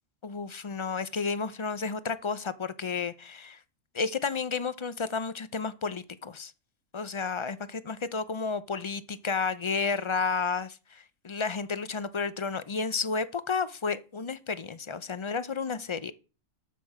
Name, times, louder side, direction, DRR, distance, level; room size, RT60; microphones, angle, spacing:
voice 1, 0.2-3.6 3.9-6.5 6.9-16.1, left 5 dB, 45° left, 0.3 m, -32 dB
12.5 x 7.4 x 4.8 m
omnidirectional pair, 1.4 m